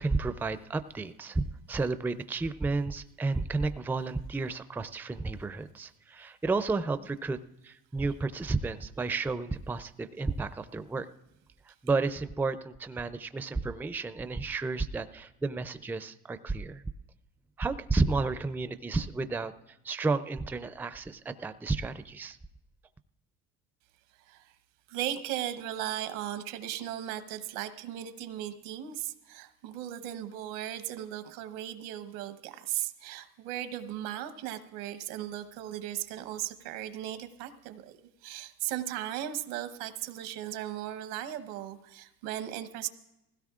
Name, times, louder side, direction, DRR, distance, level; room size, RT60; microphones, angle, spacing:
voice 1, 0.0-7.4 7.6-11.1 11.8-16.8 17.6-19.5 19.8-22.4, right 3 dB, 5° right, 12 dB, 0.4 m, -32 dB
voice 2, 24.1-24.6 24.9-42.9, right 12 dB, 85° right, 11 dB, 1.1 m, -37 dB
20.0 x 16.5 x 2.4 m, 0.95 s
supercardioid pair, 100°, 37 cm